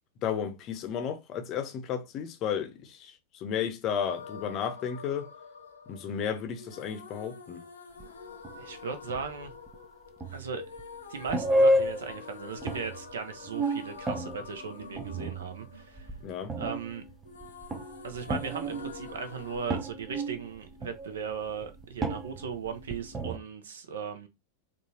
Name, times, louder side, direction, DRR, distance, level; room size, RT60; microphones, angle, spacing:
voice 1, 0.2-5.3 5.9-7.6 16.2-16.5, left 8 dB, 35° left, 0.7 m, -33 dB
sound 1, 4.0-16.9 17.2-19.8, left 5 dB, 75° left, 0.9 m, -47 dB
sound 2, 8.0-8.1 8.4-8.6 8.9-9.7 10.2-10.8 11.2-12.3 12.6-13.1 13.4-16.2 16.5-23.4, equal, 20° right, 0.5 m, -31 dB
voice 2, 8.6-9.5 10.3-10.6 11.1-16.1 16.6-17.0 18.0-24.3, right 6 dB, 65° right, 0.7 m, -37 dB
3.9 x 2.3 x 2.8 m
figure-of-eight pair, 90°, 0 cm